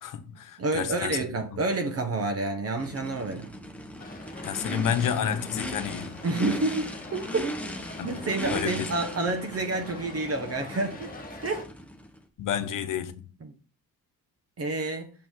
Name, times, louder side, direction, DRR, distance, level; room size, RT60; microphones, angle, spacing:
voice 1, 0.0-1.7 4.4-6.2 8.0-8.2 8.5-8.9 12.4-13.3, left 8 dB, 65° left, 1.1 m, -30 dB
voice 2, 0.6-3.5 6.2-7.6 8.0-11.1 11.4-11.7 13.4-13.5 14.6-15.1, right 2 dB, 40° right, 1.3 m, -29 dB
Race car auto racing / Idling / Accelerating revving vroom, 2.8-12.2, equal, 5° left, 1.1 m, -38 dB
sound 1, 4.0-11.7, left 3 dB, 25° left, 1.8 m, -45 dB
6.9 x 6.0 x 3.7 m
cardioid pair, 130°, 35 cm